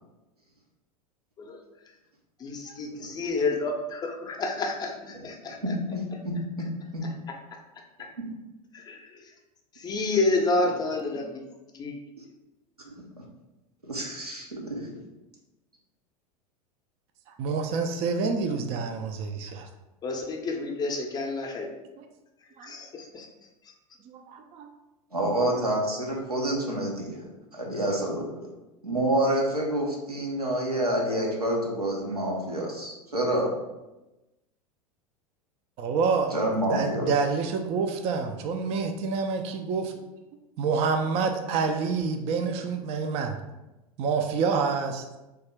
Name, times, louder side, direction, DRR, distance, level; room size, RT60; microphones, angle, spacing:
voice 1, 2.4-5.6 7.3-7.4 8.0-8.1 8.7-9.3 9.7-12.0 20.0-21.7 22.6-23.3 23.6-23.7, left 3 dB, 20° left, 2 dB, 0.5 m, -29 dB
voice 2, 5.6-6.0 6.6-6.7 6.9-7.1 12.8-12.9 13.8-14.9 25.1-28.3 28.8-33.5 36.3-37.1, right 1 dB, 90° right, -2 dB, 0.8 m, -28 dB
voice 3, 17.4-19.7 22.6-22.7 24.1-24.7 35.8-36.3 36.7-39.9 40.6-43.4 44.0-45.0, right 5 dB, 35° right, 5 dB, 0.4 m, -27 dB
3.3 x 2.7 x 3.3 m, 1.0 s
figure-of-eight pair, 85°, 19 cm